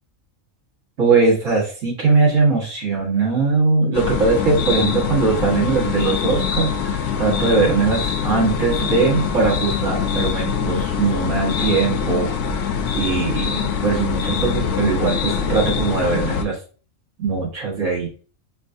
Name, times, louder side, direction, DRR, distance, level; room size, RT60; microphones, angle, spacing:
voice 1, 1.0-12.6 12.9-16.6 17.2-18.2, right 4 dB, 75° right, -4 dB, 1.8 m, -20 dB
sound 1, 3.9-16.4, left 7 dB, 70° left, 0.9 m, -23 dB
5.3 x 2.5 x 2.5 m, 0.39 s
omnidirectional pair, 1.4 m